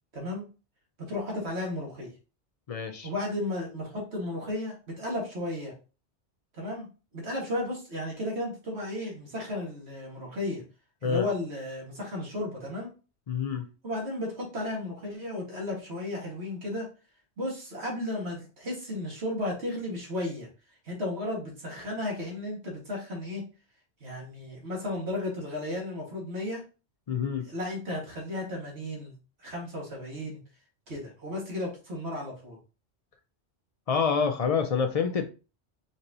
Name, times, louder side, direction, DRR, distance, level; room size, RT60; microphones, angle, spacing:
voice 1, 0.1-0.4 1.0-2.1 3.0-5.7 6.5-6.9 7.1-10.6 11.0-12.9 13.8-16.9 17.4-20.5 20.8-23.4 24.0-26.6 27.4-29.1 29.4-30.4 30.9-32.6, left 1 dB, 70° right, 1.9 m, -34 dB
voice 2, 2.7-3.1 11.0-11.3 13.3-13.7 27.1-27.5 33.9-35.3, left 6 dB, 50° left, 0.4 m, -27 dB
4.3 x 4.2 x 2.7 m
omnidirectional pair, 1.1 m